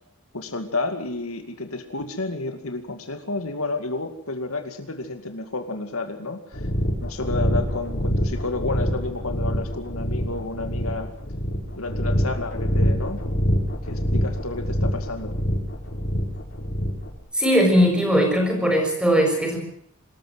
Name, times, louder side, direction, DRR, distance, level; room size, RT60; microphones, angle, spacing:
voice 1, 0.3-6.7 7.0-11.1 11.7-13.2 13.9-15.4, left 3 dB, 75° left, 6 dB, 2.4 m, -31 dB
sound 1, 6.5-17.1, equal, 55° left, 6.2 m, -25 dB
voice 2, 17.3-19.6, equal, 5° right, 3 dB, 6.3 m, -19 dB
25.5 x 14.0 x 7.6 m, 0.68 s
head